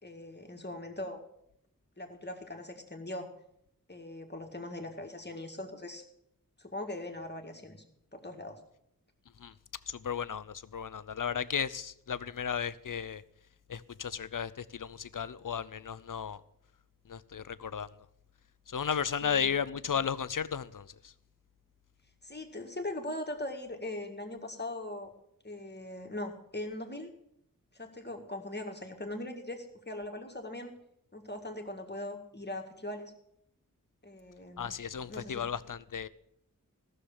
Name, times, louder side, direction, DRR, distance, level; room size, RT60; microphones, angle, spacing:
voice 1, 0.0-1.2 2.0-3.3 3.9-6.0 6.6-7.8 8.1-8.6 19.2-19.5 22.2-25.1 25.4-27.1 27.7-30.7 31.1-33.1 34.0-34.7 35.1-35.5, left 1 dB, 30° left, 1.9 m, -40 dB
voice 2, 9.9-13.2 13.7-16.4 17.1-17.9 18.7-21.1 34.6-36.1, left 7 dB, 65° left, 0.6 m, -34 dB
15.0 x 6.8 x 7.3 m
wide cardioid pair, 55°, 34 cm